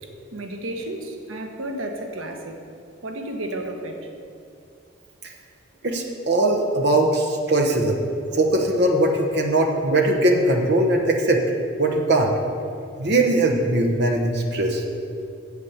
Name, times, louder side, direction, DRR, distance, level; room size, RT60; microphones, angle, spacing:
voice 1, 0.0-2.6 3.0-4.1, right 1 dB, 90° right, 4 dB, 1.1 m, -32 dB
voice 2, 5.8-8.0 8.3-11.4 11.8-12.3 13.0-14.8, right 1 dB, 55° right, 2 dB, 1.0 m, -20 dB
8.3 x 8.2 x 7.2 m, 2.5 s
head